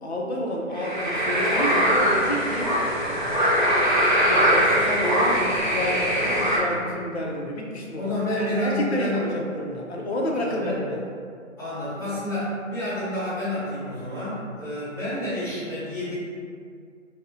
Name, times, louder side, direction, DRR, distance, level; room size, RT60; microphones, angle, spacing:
voice 1, 0.0-2.7 4.2-11.0, equal, 55° left, -1 dB, 0.5 m, -29 dB
sound 1, 0.7-6.6, equal, 40° right, 0.4 m, -22 dB
voice 2, 8.0-9.2 10.4-10.8 11.6-16.1, left 1 dB, 10° left, -23 dB, 0.9 m, -29 dB
2.5 x 2.0 x 2.5 m, 2.2 s
hypercardioid pair, 175°, 39 cm